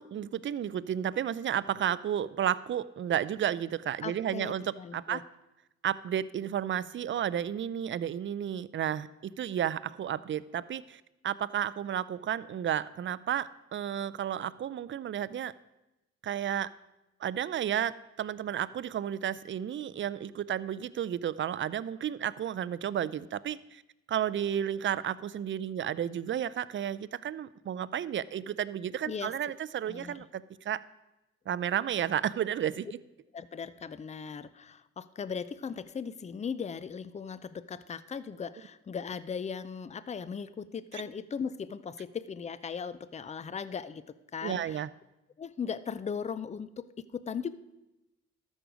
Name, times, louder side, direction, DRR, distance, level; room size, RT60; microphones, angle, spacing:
voice 1, 0.0-5.2 5.8-15.5 16.2-16.7 17.2-23.8 24.1-30.8 31.5-32.9 40.9-41.0 44.4-44.9, right 10 dB, 40° right, 17 dB, 0.5 m, -32 dB
voice 2, 4.0-5.2 29.1-29.3 29.9-30.2 33.3-44.0 44.3-44.8 45.4-46.9 47.1-47.5, left 6 dB, 25° left, 15 dB, 0.5 m, -38 dB
13.0 x 6.4 x 5.1 m, 0.96 s
cardioid pair, 90°, 30 cm